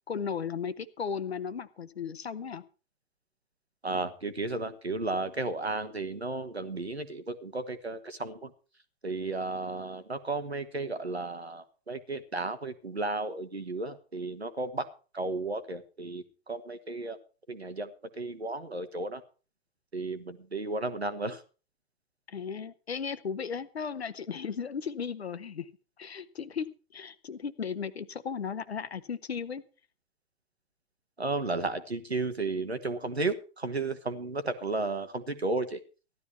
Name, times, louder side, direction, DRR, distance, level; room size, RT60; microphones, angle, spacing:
voice 1, 0.1-2.6 22.3-25.7 26.0-26.7 26.9-29.6, left 6 dB, 80° left, 14 dB, 1.1 m, -35 dB
voice 2, 3.8-8.5 9.0-14.9 15.1-17.2 17.5-19.2 19.9-21.4 31.2-35.8, right 2 dB, 90° right, 10 dB, 1.5 m, -33 dB
15.5 x 12.0 x 4.4 m, 0.35 s
figure-of-eight pair, 80°, 31 cm